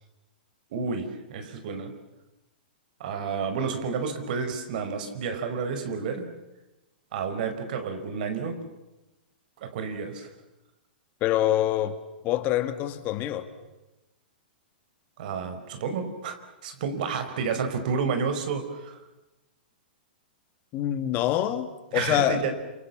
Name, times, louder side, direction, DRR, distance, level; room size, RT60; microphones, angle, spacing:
voice 1, 0.7-1.9 3.0-6.3 7.1-8.6 9.6-10.3 15.2-19.0 21.9-22.5, right 5 dB, 60° right, 8 dB, 5.0 m, -30 dB
voice 2, 11.2-12.0 12.2-13.5 20.7-22.4, left 12 dB, 35° left, 10 dB, 2.0 m, -25 dB
28.0 x 27.0 x 7.4 m, 1.0 s
hypercardioid pair, 140°, 5 cm